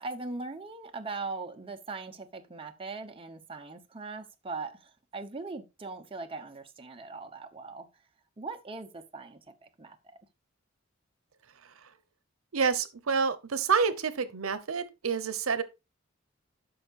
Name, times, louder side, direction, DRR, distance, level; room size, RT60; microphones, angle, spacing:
voice 1, 0.0-7.9 8.4-9.4 9.8-10.2, right 3 dB, 25° right, 0.9 m, -40 dB
voice 2, 12.5-15.6, right 5 dB, 85° right, 0.8 m, -28 dB
13.0 x 5.7 x 2.5 m
head